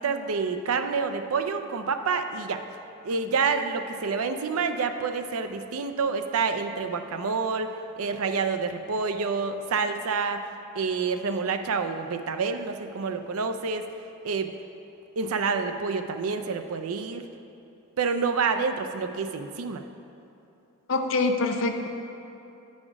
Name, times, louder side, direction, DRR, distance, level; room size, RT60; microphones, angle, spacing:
voice 1, 0.0-2.6 3.0-10.4 10.8-13.8 14.2-14.5 15.2-17.3 18.0-19.8, right 5 dB, 90° right, 8 dB, 0.5 m, -28 dB
voice 2, 20.9-21.9, left 3 dB, 65° left, 5 dB, 0.6 m, -25 dB
9.9 x 4.2 x 5.9 m, 2.8 s
head